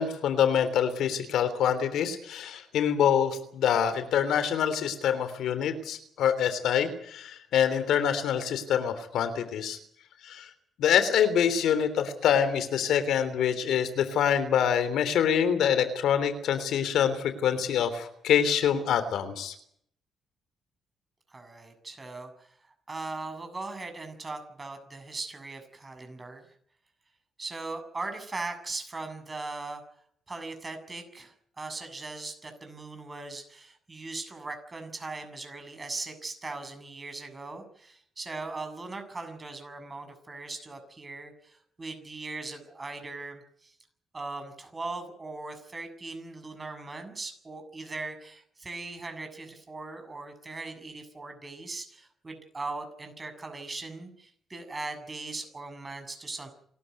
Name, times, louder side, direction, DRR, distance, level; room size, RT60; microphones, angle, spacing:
voice 1, 0.0-9.8 10.2-10.5 10.8-19.5, left 8 dB, 75° left, 11 dB, 3.3 m, -25 dB
voice 2, 21.3-22.5 22.9-26.5 27.4-29.8 30.3-43.7 44.1-56.5, right 3 dB, 25° right, 7 dB, 7.4 m, -39 dB
28.0 x 13.0 x 9.5 m, 0.66 s
cardioid pair, 90°, 0 cm